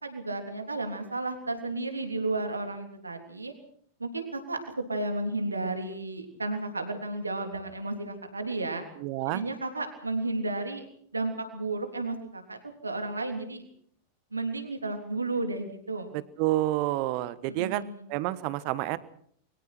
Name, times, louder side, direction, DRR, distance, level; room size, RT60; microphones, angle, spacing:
voice 1, 0.0-3.5 4.0-4.6 4.9-8.8 9.3-10.9 11.1-13.6 14.3-16.1 17.5-18.1, right 2 dB, 80° right, 6 dB, 3.3 m, -33 dB
voice 2, 9.0-9.4 16.1-17.8 18.1-19.0, right 16 dB, 45° right, 16 dB, 1.4 m, -29 dB
28.5 x 23.0 x 4.5 m, 0.62 s
figure-of-eight pair, 90°, 0 cm